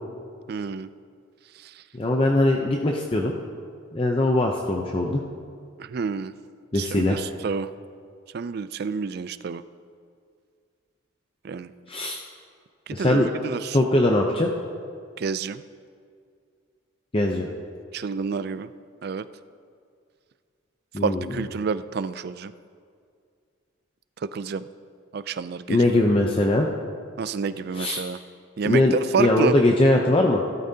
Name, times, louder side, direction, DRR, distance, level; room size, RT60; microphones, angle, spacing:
voice 1, 0.5-0.9 1.6-1.8 5.8-6.3 6.7-7.7 8.3-9.6 11.4-11.7 12.9-13.8 15.2-15.6 17.9-18.7 19.0-19.3 21.0-22.5 24.2-24.7 25.1-26.0 27.2-28.2 28.6-29.5, right 5 dB, 50° right, 14 dB, 0.3 m, -29 dB
voice 2, 1.9-3.3 3.9-5.2 6.7-7.2 11.9-12.2 12.9-13.3 13.7-14.5 17.1-17.5 20.9-21.3 25.7-26.7 27.8-28.0 28.6-30.4, left 1 dB, 25° left, 1 dB, 0.6 m, -21 dB
16.5 x 12.5 x 2.8 m, 2.2 s
head